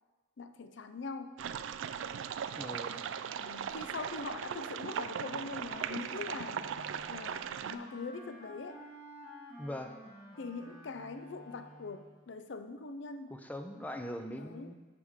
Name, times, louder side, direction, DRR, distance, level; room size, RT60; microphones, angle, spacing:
voice 1, 0.4-1.4 3.4-6.7 7.1-8.8 10.4-13.4 14.4-14.7, left 4 dB, 65° left, 9 dB, 0.6 m, -42 dB
sound 1, 1.4-7.8, right 8 dB, 75° right, 0.3 m, -38 dB
voice 2, 2.5-3.0 9.6-9.9 13.3-14.7, equal, 10° left, 6 dB, 0.5 m, -41 dB
Wind instrument woodwind instrument, 6.4-12.2, equal, 45° left, 1.7 m, -52 dB
13.5 x 4.9 x 3.6 m, 1.2 s
head